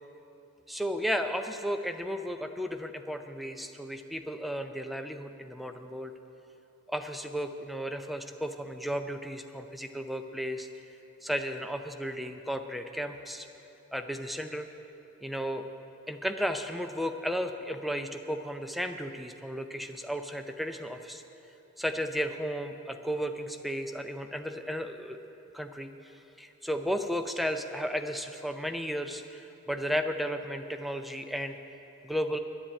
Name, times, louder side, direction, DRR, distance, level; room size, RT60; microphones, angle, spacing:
voice 1, 0.7-6.1 6.9-10.7 11.2-13.5 13.9-14.7 15.2-15.6 16.1-21.2 21.8-25.2 25.5-25.9 26.4-31.6 32.0-32.4, equal, ahead, 7 dB, 0.5 m, -34 dB
10.5 x 9.9 x 8.6 m, 2.9 s
head